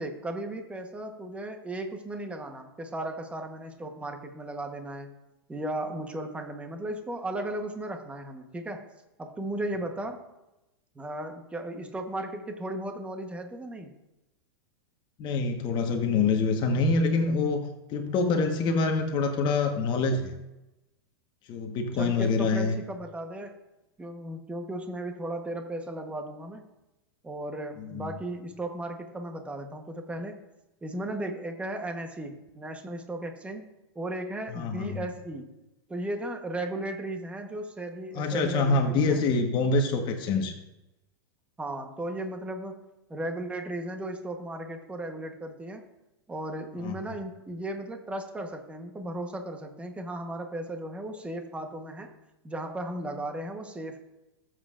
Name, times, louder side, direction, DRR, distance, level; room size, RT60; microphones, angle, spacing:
voice 1, 0.0-5.1 5.5-8.8 9.2-10.2 10.9-13.9 21.9-23.5 24.0-26.6 27.2-30.4 30.8-33.7 33.9-35.5 35.9-39.2 41.6-42.8 43.1-45.9 46.3-52.1 52.4-54.0, right 1 dB, 10° right, 5 dB, 1.1 m, -36 dB
voice 2, 15.2-20.3 21.5-22.8 27.8-28.1 34.5-35.0 38.1-40.5 46.8-47.0, left 3 dB, 35° left, 4 dB, 1.3 m, -26 dB
20.5 x 7.6 x 2.5 m, 0.98 s
supercardioid pair, 135°, 13 cm